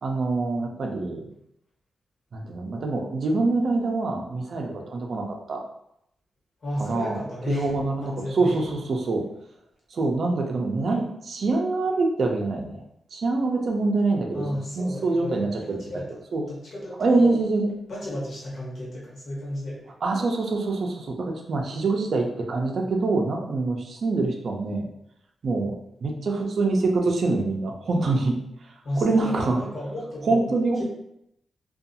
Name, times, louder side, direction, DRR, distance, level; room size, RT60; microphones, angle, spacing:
voice 1, 0.0-1.2 2.3-5.6 6.8-7.2 7.5-9.3 9.9-12.8 13.1-14.4 14.8-15.8 16.3-16.4 17.0-17.7 20.0-24.9 25.4-28.4 29.0-29.6 30.2-30.8, right 3 dB, 55° right, 1 dB, 0.4 m, -25 dB
voice 2, 6.6-7.7 8.0-8.6 14.3-16.1 16.4-17.4 17.9-19.9 28.8-30.5 30.8-30.9, equal, 55° left, -6 dB, 1.2 m, -33 dB
2.5 x 2.3 x 2.7 m, 0.77 s
wide cardioid pair, 135°, 0 cm